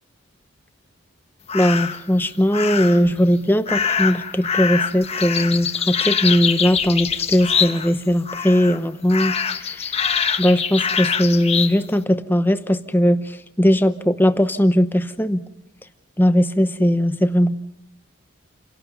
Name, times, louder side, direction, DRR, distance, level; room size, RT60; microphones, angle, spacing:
sound 1, 1.5-2.0 2.5-3.1 3.7-8.0 8.3-8.8 9.1-11.8, left 7 dB, 30° left, 1.2 m, -24 dB
voice 1, 1.5-9.9 10.4-13.2 13.6-15.4 16.2-17.6, equal, 10° left, 10 dB, 0.9 m, -19 dB
29.5 x 18.0 x 5.3 m, 0.78 s
head